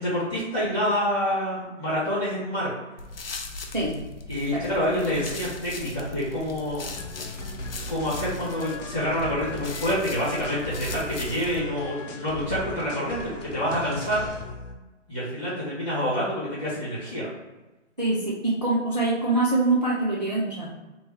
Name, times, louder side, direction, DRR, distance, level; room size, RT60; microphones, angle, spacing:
voice 1, 0.0-2.7 4.3-6.9 7.9-14.2 15.1-17.3, equal, 5° left, -15 dB, 1.0 m, -27 dB
sound 1, 3.0-11.6, left 3 dB, 50° left, 0.5 m, -39 dB
sound 2, 6.9-14.8, left 2 dB, 75° left, 0.9 m, -38 dB
voice 2, 18.0-20.7, right 2 dB, 35° right, -6 dB, 0.4 m, -24 dB
3.3 x 2.7 x 3.3 m, 1.1 s
hypercardioid pair, 175°, 37 cm